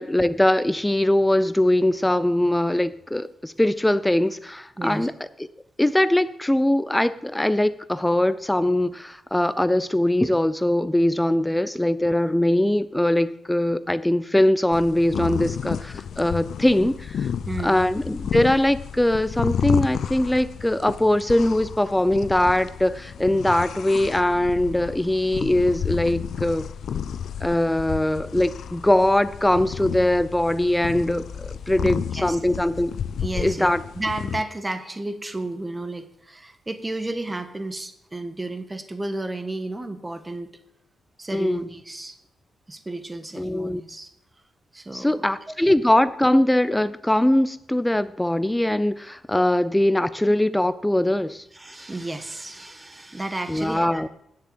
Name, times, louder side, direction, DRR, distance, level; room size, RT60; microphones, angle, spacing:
voice 1, 0.0-5.1 5.4-5.5 5.8-16.9 17.6-26.6 27.4-33.0 33.4-33.8 41.3-41.7 43.4-43.8 44.9-51.4 53.5-54.1, left 1 dB, 10° left, 13 dB, 0.5 m, -21 dB
voice 2, 4.8-5.1 16.8-16.9 17.5-17.8 31.8-32.4 33.2-40.5 41.2-42.2 42.7-44.1 44.7-45.3 51.5-54.1, right 2 dB, 20° right, 8 dB, 1.4 m, -32 dB
sound 1, 14.7-34.4, left 8 dB, 70° left, 0.5 m, -31 dB
10.0 x 7.0 x 8.8 m, 0.75 s
cardioid pair, 85°, 0 cm